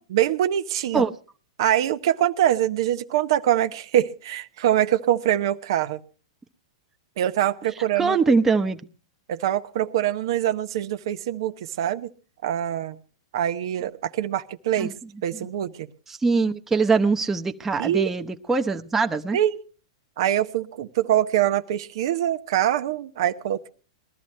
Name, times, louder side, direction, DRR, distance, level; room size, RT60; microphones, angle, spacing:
voice 1, 0.1-1.0 1.6-6.0 7.2-8.2 9.3-12.1 12.4-13.0 13.3-14.9 15.2-15.9 17.8-18.1 19.3-19.6 20.2-23.7, right 11 dB, 65° right, 10 dB, 0.8 m, -24 dB
voice 2, 8.0-8.8 14.8-14.9 15.4-15.5 16.1-19.4, right 4 dB, 15° right, 5 dB, 0.9 m, -22 dB
20.5 x 13.0 x 3.2 m, 0.37 s
hypercardioid pair, 115°, 3 cm